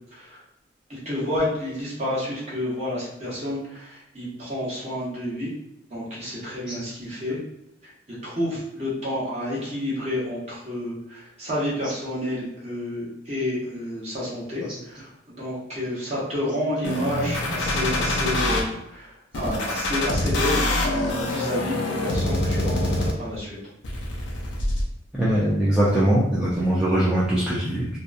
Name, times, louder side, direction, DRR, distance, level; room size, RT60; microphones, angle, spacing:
voice 1, 0.9-5.5 5.9-7.4 7.8-7.9 8.2-20.7 21.1-23.5, left 1 dB, 35° right, -7 dB, 1.0 m, -30 dB
sound 1, 16.8-18.6 19.3-23.4 23.8-24.8, left 1 dB, 65° left, 0.5 m, -25 dB
voice 2, 25.1-28.0, right 1 dB, 5° right, -9 dB, 0.4 m, -21 dB
2.8 x 2.3 x 2.4 m, 0.84 s
head